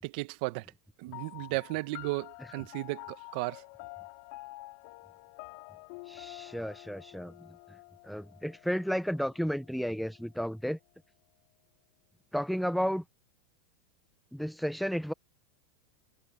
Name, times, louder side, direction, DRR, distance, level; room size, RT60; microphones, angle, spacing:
voice 1, 0.0-0.7 1.0-3.6, right 22 dB, 60° right, 1.4 m, -35 dB
sound 1, 1.1-9.9, left 27 dB, 60° left, 5.7 m, -48 dB
voice 2, 6.1-7.5 8.0-10.8 12.3-13.0 14.3-15.1, equal, ahead, 0.9 m, -32 dB
supercardioid pair, 125°, 5 cm